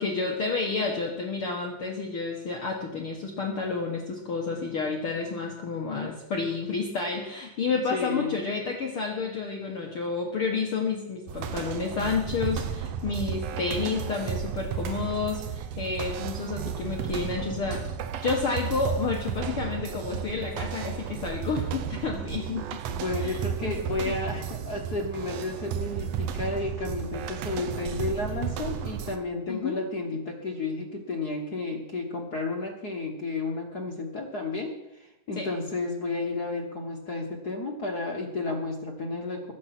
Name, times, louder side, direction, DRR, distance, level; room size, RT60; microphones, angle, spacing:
voice 1, 0.0-17.8 18.2-22.6 23.2-23.7 24.0-24.1 29.5-29.8 35.4-35.5, left 4 dB, 55° left, 1 dB, 1.7 m, -30 dB
voice 2, 7.9-8.3 22.9-39.5, left 3 dB, 85° left, 0 dB, 0.8 m, -32 dB
sound 1, 11.3-29.2, right 8 dB, 80° right, 1.4 m, -33 dB
21.5 x 7.9 x 6.0 m, 0.95 s
omnidirectional pair, 3.9 m